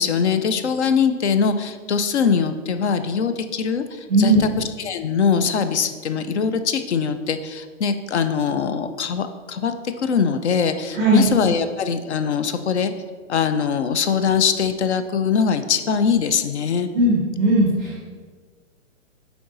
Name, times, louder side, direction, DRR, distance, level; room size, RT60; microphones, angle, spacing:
voice 1, 0.0-12.9 13.3-16.9, left 6 dB, 55° left, 10 dB, 0.6 m, -22 dB
voice 2, 4.1-4.4 10.9-11.3 16.9-18.1, right 1 dB, 5° right, -6 dB, 0.5 m, -18 dB
7.9 x 4.8 x 3.9 m, 1.5 s
hypercardioid pair, 165°, 40 cm